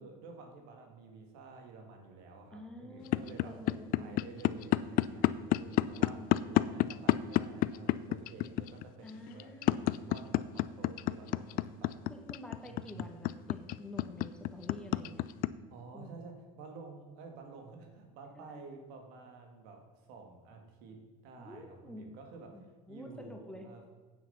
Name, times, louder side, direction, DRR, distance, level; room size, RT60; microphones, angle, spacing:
voice 1, 0.0-3.6 4.0-12.1 12.6-13.1 15.7-23.8, right 4 dB, 70° right, 3 dB, 2.3 m, -51 dB
voice 2, 2.5-4.2 5.8-6.7 9.0-9.9 11.3-11.8 12.1-15.2 15.9-16.3 18.3-18.6 21.4-22.0 22.5-23.7, left 1 dB, 5° left, 2 dB, 1.9 m, -49 dB
sound 1, 3.1-15.5, left 17 dB, 55° left, 0.5 m, -28 dB
9.2 x 7.5 x 5.8 m, 1.4 s
supercardioid pair, 85°, 17 cm